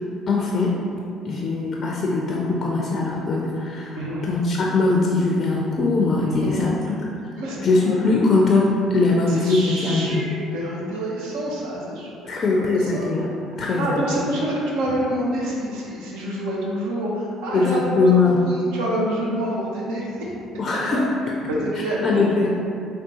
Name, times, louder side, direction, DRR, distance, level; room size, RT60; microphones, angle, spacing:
voice 1, 0.3-0.7 1.3-4.0 4.2-6.7 7.6-10.2 12.3-13.3 13.6-14.0 17.5-18.4 20.6-21.4 22.0-22.5, left 3 dB, 45° left, -2 dB, 0.4 m, -21 dB
voice 2, 3.9-4.3 6.2-6.7 7.4-8.2 9.3-13.1 13.5-20.3 20.7-22.5, right 1 dB, 75° right, -4 dB, 0.6 m, -28 dB
3.5 x 2.2 x 2.8 m, 2.5 s
hypercardioid pair, 55°, 0 cm